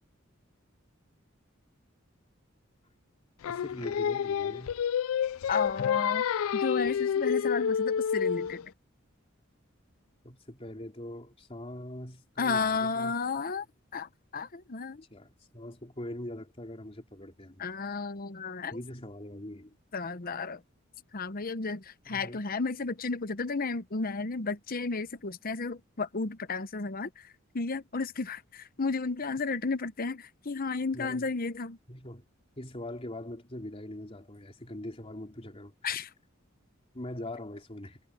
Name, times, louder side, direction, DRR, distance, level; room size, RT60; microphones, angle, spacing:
Singing, 3.4-8.6, left 8 dB, 90° left, 0.4 m, -29 dB
voice 1, 3.5-4.8 10.2-13.1 15.1-17.6 18.7-19.8 22.1-22.4 30.9-31.3 31.9-32.2 32.6-35.7 36.9-38.0, left 1 dB, 30° left, 3.4 m, -42 dB
voice 2, 5.5-6.2 6.5-8.7 12.4-13.7 13.9-15.0 17.6-18.8 19.9-20.6 21.1-31.8 35.8-36.1, left 4 dB, 45° left, 0.9 m, -33 dB
head